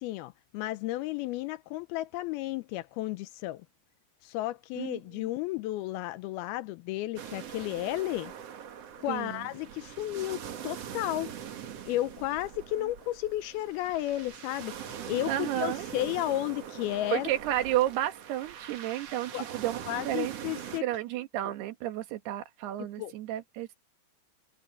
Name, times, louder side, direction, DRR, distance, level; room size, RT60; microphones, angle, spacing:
voice 1, 0.0-3.7 4.2-8.3 9.0-11.3 11.9-14.7 15.1-17.3 19.3-19.4 19.9-20.8 23.0-23.1, left 15 dB, 80° left, 2.5 m, -33 dB
voice 2, 4.8-5.3 9.1-9.5 15.3-15.9 17.1-23.7, right 13 dB, 80° right, 3.4 m, -32 dB
sound 1, 7.2-20.8, right 9 dB, 55° right, 1.9 m, -42 dB
omnidirectional pair, 4.6 m